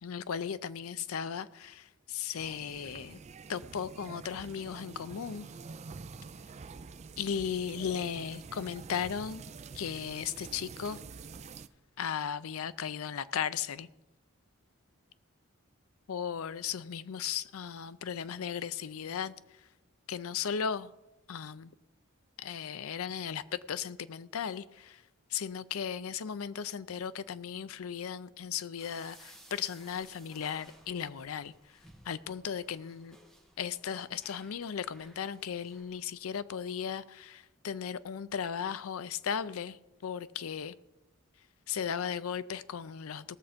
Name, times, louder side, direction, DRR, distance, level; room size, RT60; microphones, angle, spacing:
voice 1, 0.0-3.2 3.5-5.5 7.2-9.4 9.7-11.0 12.0-13.9 16.1-19.3 20.1-20.9 21.3-21.7 22.4-23.4 23.7-25.0 25.3-31.5 32.1-33.2 33.6-39.8 40.0-40.7 41.7-43.4, left 7 dB, 85° left, 0.5 m, -36 dB
sound 1, 2.4-11.7, right 4 dB, 30° right, 0.4 m, -47 dB
sound 2, 28.8-36.1, right 1 dB, 5° left, 1.9 m, -58 dB
17.5 x 6.9 x 5.0 m
head